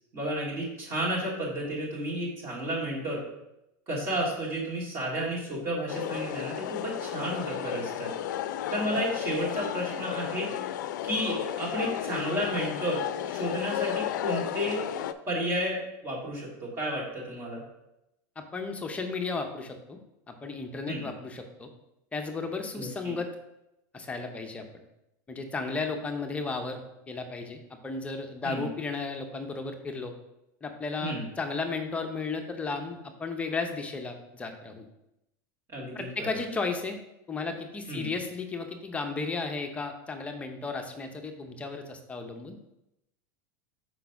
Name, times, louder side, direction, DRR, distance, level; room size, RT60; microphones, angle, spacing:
voice 1, 0.1-3.2 3.9-8.1 8.7-10.5 11.0-14.9 15.3-17.6 20.9-21.1 22.7-23.1 28.4-28.6 31.0-31.3 35.7-36.3 37.9-38.1, equal, 30° right, -5 dB, 2.1 m, -32 dB
sound 1, 5.9-15.1, left 11 dB, 85° left, 0.4 m, -33 dB
voice 2, 18.4-20.0 20.3-21.7 22.1-23.3 23.9-24.6 25.3-30.1 30.6-34.9 35.9-37.0 37.3-42.5, left 4 dB, 15° left, 5 dB, 0.7 m, -34 dB
5.1 x 3.9 x 5.8 m, 0.87 s
supercardioid pair, 145°, 10 cm